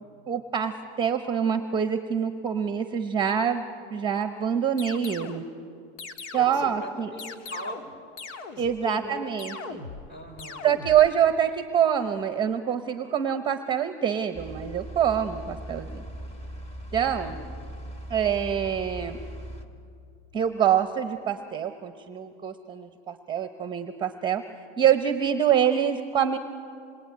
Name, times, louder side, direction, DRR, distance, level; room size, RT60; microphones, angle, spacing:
voice 1, 0.3-3.6 3.9-5.4 6.3-7.1 8.6-9.8 10.6-16.1 16.9-17.4 18.1-19.2 20.3-26.4, right 8 dB, 15° right, 8 dB, 0.9 m, -25 dB
sound 1, 4.8-5.5 6.0-6.7 7.2-8.8 9.4-10.1 10.4-11.1, left 4 dB, 80° left, 2.3 m, -40 dB
voice 2, 6.3-7.9 8.5-9.3 10.1-10.7 17.0-17.5, left 1 dB, 35° left, 4 dB, 5.7 m, -40 dB
sound 2, 14.3-19.6, right 1 dB, 20° left, 2.1 m, -39 dB
27.0 x 22.0 x 9.4 m, 2.4 s
supercardioid pair, 155°, 34 cm